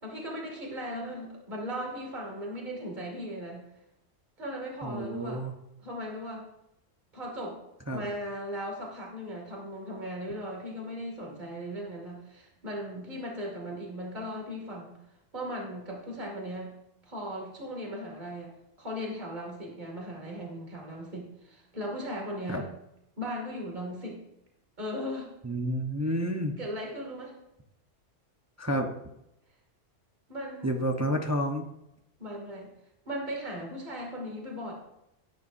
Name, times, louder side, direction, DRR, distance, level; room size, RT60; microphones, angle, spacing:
voice 1, 0.0-3.6 4.4-5.4 5.8-6.5 7.1-7.6 7.9-15.0 15.3-16.7 17.0-22.7 23.2-24.2 24.8-25.3 26.6-27.3 30.3-30.9 32.2-32.7 33.0-34.7, equal, 35° right, -1 dB, 2.6 m, -37 dB
voice 2, 4.8-5.5 7.9-8.0 22.5-22.6 25.4-26.6 28.6-28.9 30.6-31.7, equal, 15° right, 3 dB, 0.8 m, -30 dB
18.5 x 9.9 x 2.7 m, 0.85 s
omnidirectional pair, 1.3 m